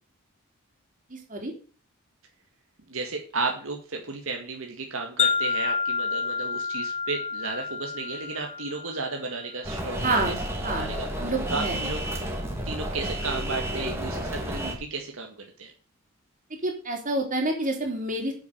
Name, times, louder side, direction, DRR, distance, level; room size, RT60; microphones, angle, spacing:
voice 1, 1.1-1.5 10.0-10.4 10.6-10.9 11.2-11.8 16.6-18.3, right 2 dB, 40° right, 2 dB, 3.6 m, -28 dB
voice 2, 2.9-10.3 10.8-11.1 11.5-12.0 12.7-15.7, right 3 dB, 75° right, 2 dB, 1.9 m, -33 dB
Wind chime, 5.2-9.5, left 5 dB, 30° left, 1.7 m, -29 dB
sound 1, 9.6-14.7, right 1 dB, 10° right, 2.8 m, -31 dB
8.9 x 7.4 x 8.0 m, 0.39 s
head